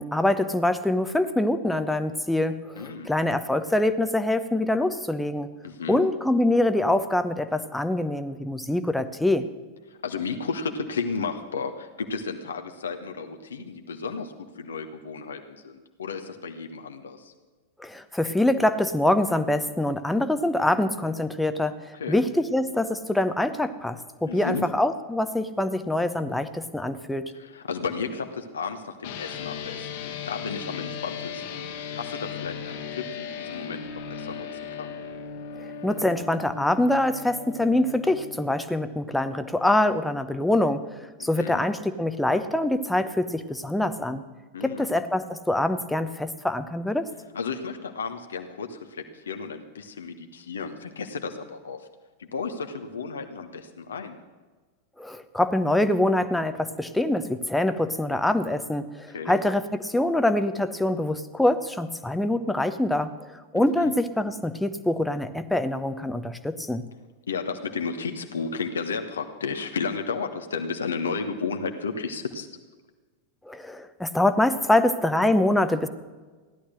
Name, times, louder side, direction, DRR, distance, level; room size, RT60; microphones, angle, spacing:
voice 1, 0.0-5.5 5.9-9.5 17.8-21.8 22.1-27.3 35.8-40.9 41.2-44.2 44.6-47.1 55.0-66.8 73.5-75.9, left 1 dB, 5° left, 10 dB, 0.9 m, -24 dB
voice 2, 2.7-3.1 5.6-6.0 10.0-17.3 21.9-22.2 24.3-24.6 27.3-31.7 31.9-34.5 34.8-34.9 41.2-41.6 44.5-44.9 47.3-51.8 52.2-54.2 59.1-59.4 63.5-63.9 67.3-72.5, left 5 dB, 70° left, 6 dB, 1.2 m, -33 dB
sound 1, 29.0-38.5, left 7 dB, 50° left, 1.7 m, -37 dB
15.5 x 11.5 x 6.3 m, 1.4 s
figure-of-eight pair, 90°, 0 cm